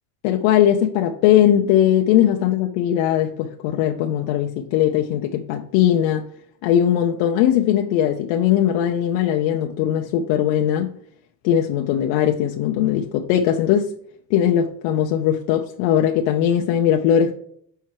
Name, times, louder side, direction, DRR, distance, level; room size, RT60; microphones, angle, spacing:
voice 1, 0.2-6.3 6.6-10.9 11.4-13.9 14.3-17.3, left 10 dB, 70° left, 3 dB, 0.7 m, -19 dB
5.7 x 4.5 x 4.6 m, 0.64 s
cardioid pair, 170°, 48 cm